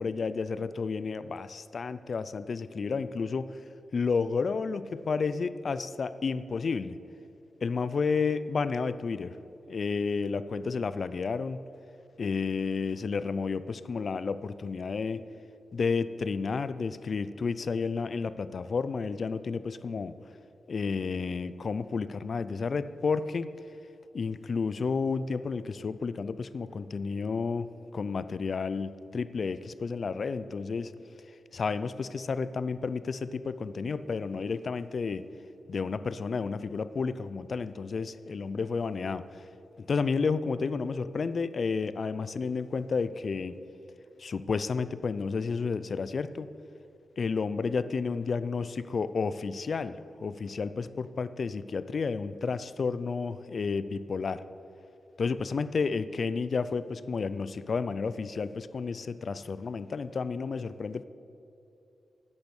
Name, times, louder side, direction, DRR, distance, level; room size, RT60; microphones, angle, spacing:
voice 1, 0.0-3.6 3.9-7.0 7.6-9.4 9.7-11.6 12.2-15.2 15.7-20.2 20.7-23.5 24.1-30.9 31.5-35.3 35.7-39.3 39.8-43.6 44.2-46.5 47.2-54.4 55.2-61.0, left 5 dB, 45° left, 14 dB, 0.4 m, -31 dB
10.5 x 8.7 x 8.2 m, 2.8 s
wide cardioid pair, 150°, 0 cm